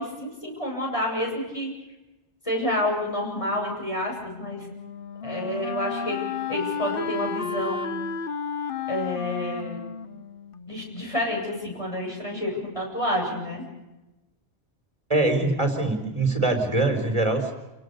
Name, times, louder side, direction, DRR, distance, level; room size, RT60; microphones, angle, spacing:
voice 1, 0.0-1.7 2.4-4.7 5.2-8.0 8.9-9.8 10.7-13.6, left 1 dB, 25° left, -2 dB, 8.1 m, -29 dB
Wind instrument woodwind instrument, 4.3-11.1, left 6 dB, 55° left, 1.1 m, -33 dB
voice 2, 15.1-17.5, right 2 dB, 25° right, 4 dB, 4.5 m, -23 dB
30.0 x 18.5 x 6.9 m, 1.0 s
omnidirectional pair, 1.2 m